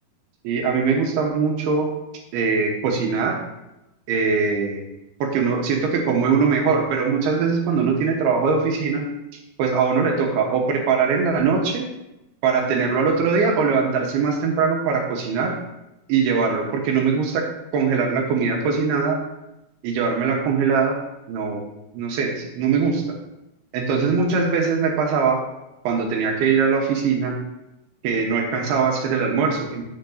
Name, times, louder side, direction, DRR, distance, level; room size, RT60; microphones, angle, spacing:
voice 1, 0.4-1.9 2.3-3.4 4.1-4.8 5.2-9.0 9.6-11.9 12.4-15.5 16.1-17.5 17.7-19.2 19.8-21.0 21.3-21.6 21.9-23.0 23.7-25.4 25.8-27.4 28.0-29.8, right 5 dB, 75° right, 1 dB, 2.7 m, -21 dB
10.0 x 8.5 x 2.6 m, 0.93 s
omnidirectional pair, 5.3 m